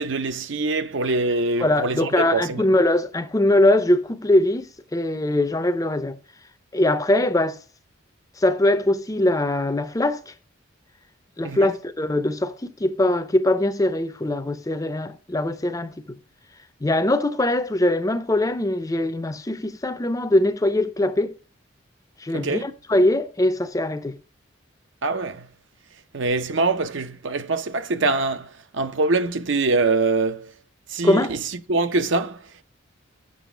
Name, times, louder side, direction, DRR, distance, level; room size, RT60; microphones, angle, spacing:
voice 1, 0.0-2.7 11.4-11.7 22.3-22.7 25.0-25.5 26.1-30.5 30.9-32.6, right 3 dB, 65° right, 0.7 m, -24 dB
voice 2, 1.6-6.2 6.7-7.6 8.4-10.3 11.4-16.2 16.8-21.3 22.2-24.2 31.0-31.3, left 1 dB, 15° left, 0.6 m, -22 dB
7.6 x 6.1 x 4.9 m
head